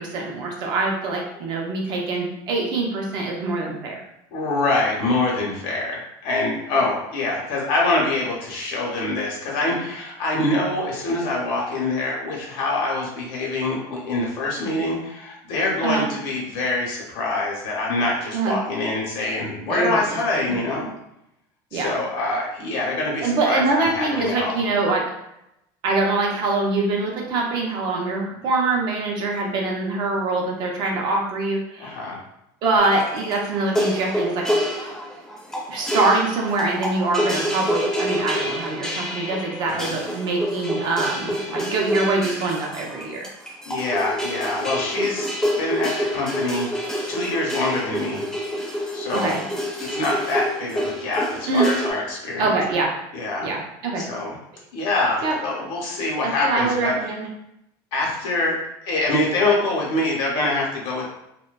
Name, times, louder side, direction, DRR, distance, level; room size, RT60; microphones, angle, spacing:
voice 1, 0.0-4.0 6.7-6.8 15.8-16.1 18.3-18.6 19.7-20.6 21.7-21.9 23.2-25.0 25.8-32.0 32.6-34.4 34.7-34.9 35.7-43.3 49.1-49.4 51.5-51.7 52.4-52.9 53.4-54.0 55.2-55.4 56.2-57.2, right 3 dB, 45° right, 0 dB, 0.5 m, -24 dB
voice 2, 4.3-20.9 21.7-24.6 31.8-32.2 39.7-39.9 43.7-48.2 48.9-49.4 49.8-52.5 53.1-53.5 53.9-54.3 54.7-56.9 57.9-58.6 58.8-61.1, left 2 dB, 60° left, -2 dB, 0.7 m, -25 dB
sound 1, 32.8-51.9, equal, 5° left, 0.5 m, -27 dB
2.6 x 2.1 x 2.2 m, 0.82 s
cardioid pair, 175°, 10 cm